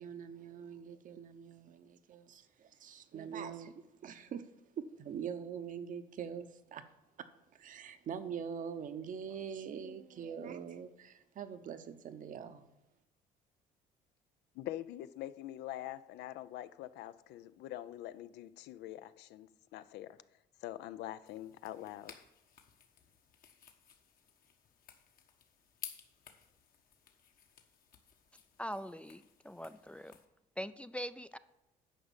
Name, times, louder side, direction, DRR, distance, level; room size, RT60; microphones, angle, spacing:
voice 1, 0.0-4.5 4.8-6.8 7.2-7.3 7.5-12.7, right 7 dB, 50° right, 0.8 m, -43 dB
voice 2, 14.5-20.2 20.6-22.2, left 13 dB, 80° left, 0.5 m, -44 dB
sound 1, 21.2-30.2, left 8 dB, 60° left, 1.2 m, -55 dB
voice 3, 28.6-30.2 30.6-31.4, equal, 5° left, 0.3 m, -42 dB
10.0 x 5.1 x 7.1 m
cardioid pair, 110°, 17 cm